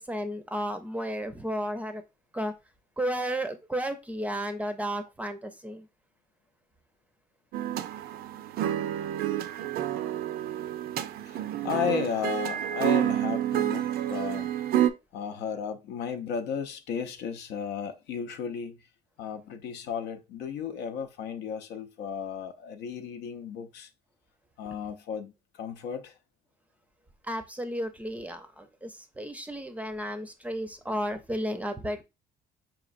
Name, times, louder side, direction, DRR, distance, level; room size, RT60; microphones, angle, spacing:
voice 1, 0.0-2.0 2.3-2.5 3.0-5.9 27.2-32.0, equal, 10° right, 0.5 m, -33 dB
sound 1, 7.5-14.9, right 11 dB, 65° right, 0.4 m, -29 dB
voice 2, 11.2-14.5 15.1-18.8 19.2-23.9 24.6-26.2, left 7 dB, 80° left, 0.6 m, -34 dB
4.8 x 3.0 x 2.5 m
cardioid pair, 110°, 17 cm